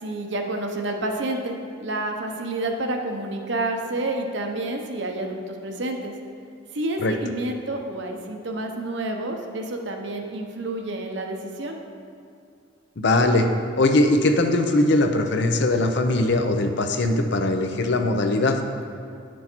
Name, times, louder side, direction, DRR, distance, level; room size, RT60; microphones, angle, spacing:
voice 1, 0.0-6.1 6.7-11.8, right 2 dB, 65° right, 3 dB, 0.8 m, -29 dB
voice 2, 13.0-13.5 13.8-18.6, left 2 dB, 60° left, 6 dB, 0.7 m, -20 dB
9.6 x 6.2 x 4.4 m, 2.4 s
head